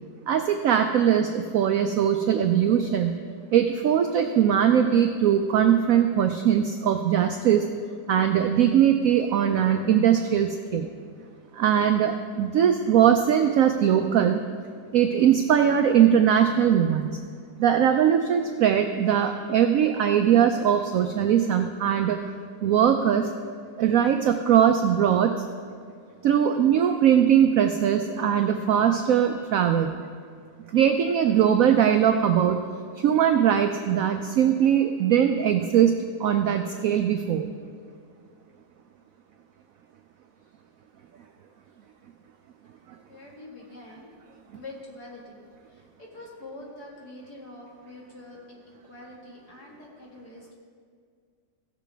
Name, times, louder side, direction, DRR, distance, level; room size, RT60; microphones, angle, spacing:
voice 1, 0.3-3.1 3.5-7.6 8.1-10.9 11.5-14.4 14.9-17.1 17.6-22.2 22.6-23.3 23.8-25.4 26.2-29.9 30.7-32.6 33.0-37.5, right 9 dB, 80° right, 6 dB, 0.7 m, -21 dB
voice 2, 42.6-44.1 44.5-45.4 45.7-50.5, left 2 dB, 60° left, -2 dB, 2.4 m, -45 dB
16.5 x 7.1 x 3.4 m, 2.1 s
omnidirectional pair, 2.0 m